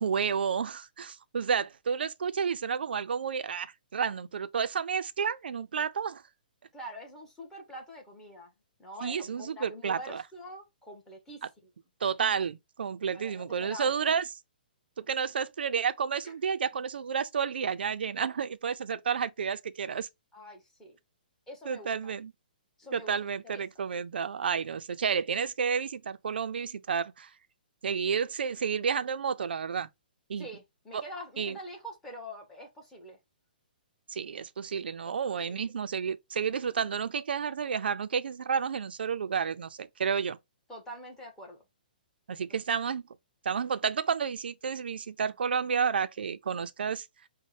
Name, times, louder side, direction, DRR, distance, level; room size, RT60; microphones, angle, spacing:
voice 1, 0.0-6.2 9.0-10.2 12.0-14.2 15.0-20.1 21.7-22.3 22.9-27.3 27.8-29.9 30.3-30.5 30.9-31.0 31.4-31.6 34.1-40.4 42.3-43.0 43.4-47.1, right 6 dB, 85° right, 0.4 m, -31 dB
voice 2, 6.7-8.5 8.8-11.7 13.1-14.2 16.2-16.3 18.9-19.0 20.3-21.0 21.5-22.1 22.8-23.6 30.4-33.2 35.0-35.7 40.7-41.6, equal, 5° left, 0.9 m, -45 dB
5.2 x 2.1 x 3.1 m
hypercardioid pair, 165°, 5 cm